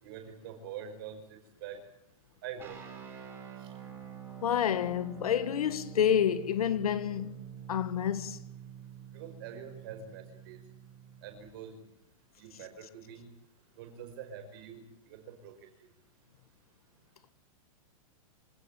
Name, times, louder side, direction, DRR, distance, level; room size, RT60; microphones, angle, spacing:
voice 1, 0.0-1.8 2.4-2.8 9.1-10.6 11.2-11.8 12.4-13.3 13.8-15.5 15.8-15.9, right 8 dB, 40° right, 5.5 m, -45 dB
sound 1, 2.6-11.5, right 9 dB, 10° right, 4.5 m, -47 dB
voice 2, 4.4-7.4 7.7-8.4, left 9 dB, 80° left, 1.7 m, -29 dB
26.0 x 17.5 x 9.1 m
supercardioid pair, 180°, 19 cm